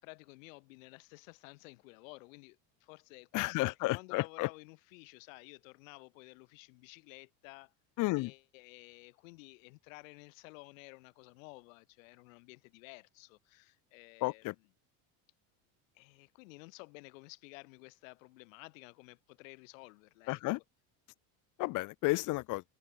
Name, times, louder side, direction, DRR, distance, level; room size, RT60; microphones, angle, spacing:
voice 1, 0.0-7.7 8.2-14.5 15.9-20.4, left 26 dB, 85° left, 6.3 m, -53 dB
voice 2, 3.3-4.5 8.0-8.3 14.2-14.5 20.3-20.6 21.6-22.6, left 21 dB, 50° left, 2.3 m, -32 dB
cardioid pair, 160°, 38 cm